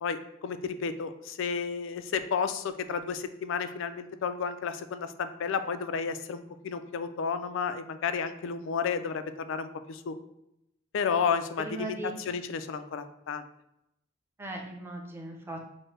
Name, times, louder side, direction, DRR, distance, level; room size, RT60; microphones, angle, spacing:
voice 1, 0.0-10.2 10.9-13.4, left 6 dB, 65° left, 10 dB, 0.4 m, -32 dB
voice 2, 11.6-12.1 14.4-15.7, right 2 dB, 10° right, 1 dB, 0.5 m, -38 dB
6.0 x 2.1 x 3.2 m, 0.82 s
head